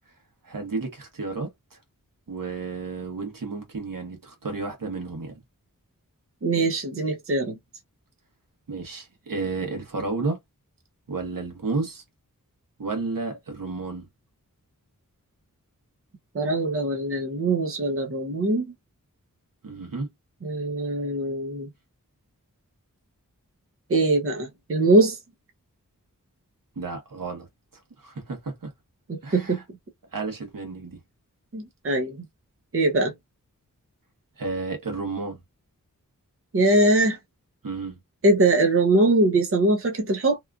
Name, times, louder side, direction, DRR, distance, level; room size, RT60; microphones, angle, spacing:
voice 1, 0.4-1.8 2.3-5.3 8.7-10.4 11.1-12.0 12.8-14.1 19.6-20.1 26.7-27.5 28.0-28.7 29.2-29.6 30.1-31.0 34.4-35.4 37.6-38.0, right 3 dB, 80° right, 1.2 m, -32 dB
voice 2, 6.4-7.5 16.3-18.7 20.4-21.7 23.9-25.2 29.1-29.6 31.5-32.2 32.7-33.1 36.5-37.2 38.2-40.4, right 2 dB, 40° right, 0.7 m, -22 dB
2.9 x 2.4 x 2.3 m
wide cardioid pair, 80°, 33 cm